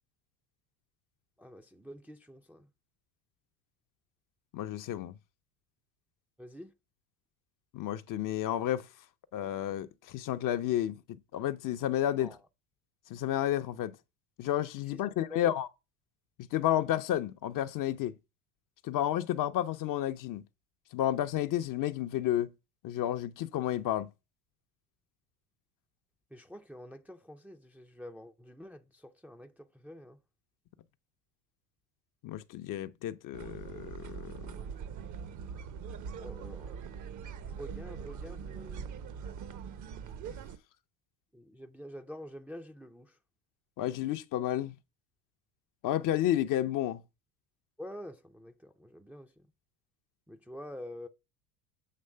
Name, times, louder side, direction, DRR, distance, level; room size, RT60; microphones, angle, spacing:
voice 1, 1.4-2.7 6.4-6.7 12.2-12.4 14.9-15.0 15.3-15.5 26.3-30.2 36.2-36.8 37.4-38.9 41.3-43.2 47.8-49.5 50.3-51.1, equal, 5° right, 0.5 m, -47 dB
voice 2, 4.5-5.1 7.7-8.9 9.3-11.0 11.3-12.3 13.1-14.0 14.4-15.7 16.5-18.1 18.8-20.4 20.9-22.5 22.8-24.1 32.2-34.4 43.8-44.7 45.8-47.0, left 12 dB, 45° left, 0.6 m, -31 dB
sound 1, 33.3-40.6, right 7 dB, 40° right, 0.8 m, -42 dB
7.7 x 3.1 x 5.5 m
hypercardioid pair, 80°, 46 cm